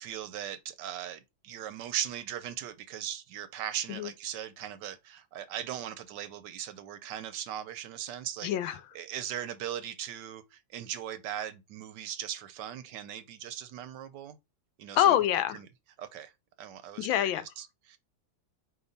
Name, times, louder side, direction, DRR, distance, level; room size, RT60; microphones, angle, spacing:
voice 1, 0.0-14.4 14.8-15.1 15.5-15.7 16.0-16.3 16.6-18.0, right 10 dB, 75° right, 1.1 m, -39 dB
voice 2, 8.4-8.7 15.0-15.6 17.0-17.4, left 11 dB, 85° left, 1.4 m, -25 dB
4.5 x 2.9 x 3.9 m
omnidirectional pair, 2.1 m